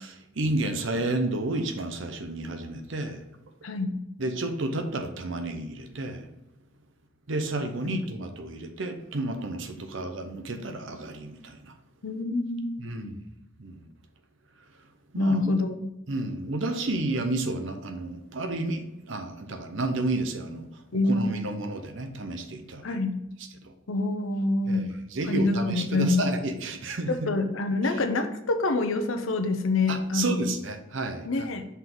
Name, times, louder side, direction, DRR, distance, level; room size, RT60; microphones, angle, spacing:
voice 1, 0.0-3.2 4.2-6.2 7.3-11.7 12.8-13.1 13.6-13.8 15.1-15.5 16.1-20.7 21.1-23.0 24.7-27.3 29.9-31.5, right 2 dB, 65° right, 7 dB, 0.7 m, -31 dB
voice 2, 3.6-4.0 7.8-8.0 9.8-9.9 12.0-13.1 15.1-15.9 20.9-21.6 22.8-23.2 23.9-24.9 25.2-26.3 27.1-30.5 31.2-31.6, left 2 dB, 75° left, 7 dB, 0.7 m, -26 dB
5.7 x 3.9 x 4.5 m, 0.91 s
head